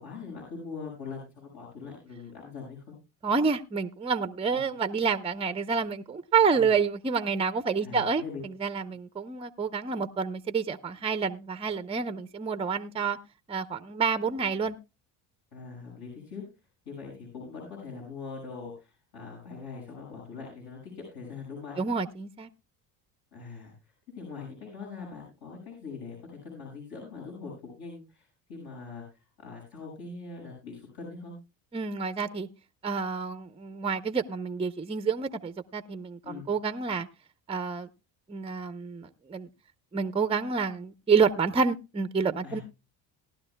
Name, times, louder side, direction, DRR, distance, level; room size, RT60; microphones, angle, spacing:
voice 1, 0.0-3.0 6.5-6.7 7.8-8.4 15.5-16.4 16.8-21.8 23.3-23.7 24.2-31.3 36.2-36.5 42.4-42.6, left 4 dB, 60° left, -2 dB, 6.5 m, -42 dB
voice 2, 3.2-13.2 13.5-14.8 21.8-22.5 31.7-32.5 32.8-37.1 37.5-37.9 38.3-39.5 39.9-42.6, right 5 dB, 15° right, 12 dB, 0.6 m, -28 dB
18.5 x 12.0 x 2.2 m, 0.27 s
supercardioid pair, 90°, 43 cm